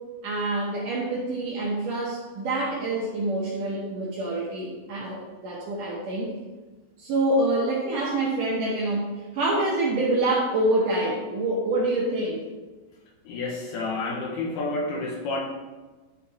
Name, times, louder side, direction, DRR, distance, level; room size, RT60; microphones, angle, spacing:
voice 1, 0.2-6.3 7.0-9.1 9.3-12.4, right 2 dB, 70° right, -4 dB, 2.1 m, -26 dB
voice 2, 13.2-15.4, left 2 dB, 75° left, 0 dB, 2.7 m, -29 dB
11.5 x 4.1 x 4.2 m, 1.3 s
omnidirectional pair, 5.0 m